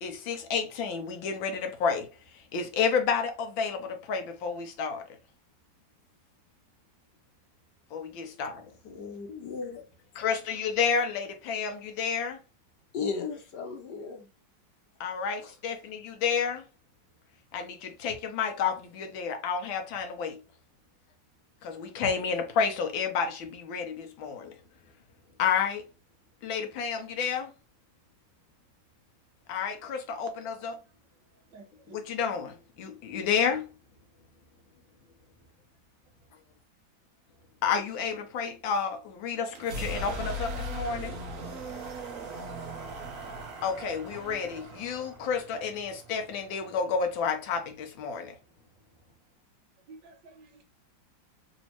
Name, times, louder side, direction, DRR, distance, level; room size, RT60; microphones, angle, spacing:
voice 1, 0.0-5.1 7.9-8.7 10.2-12.4 15.0-16.6 17.5-20.4 21.6-24.6 25.4-25.9 26.4-27.5 29.5-30.8 31.9-33.7 37.6-41.2 43.6-48.4, left 6 dB, 85° left, 1.5 m, -30 dB
voice 2, 8.8-9.8 12.9-14.3 15.4-15.5, left 5 dB, 65° left, 1.4 m, -35 dB
voice 3, 31.5-32.0 49.9-50.6, right 3 dB, 70° right, 1.3 m, -51 dB
sound 1, 39.5-47.2, equal, 55° right, 1.0 m, -39 dB
4.1 x 2.7 x 2.9 m
omnidirectional pair, 2.1 m